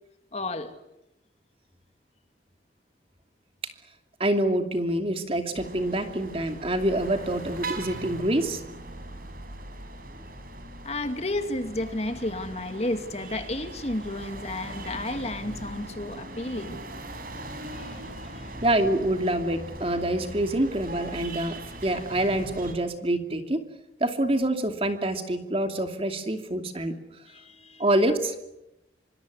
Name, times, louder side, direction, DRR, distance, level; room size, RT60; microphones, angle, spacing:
voice 1, 0.3-0.7 10.8-16.8 17.6-18.5 27.3-27.8, left 1 dB, 35° left, 8 dB, 2.3 m, -32 dB
voice 2, 4.2-8.6 18.6-23.6 24.0-27.0 27.8-28.4, right 1 dB, 30° right, 6 dB, 2.7 m, -26 dB
sound 1, 5.6-22.8, right 1 dB, 50° right, 5.2 m, -40 dB
26.0 x 25.5 x 8.3 m, 0.89 s
head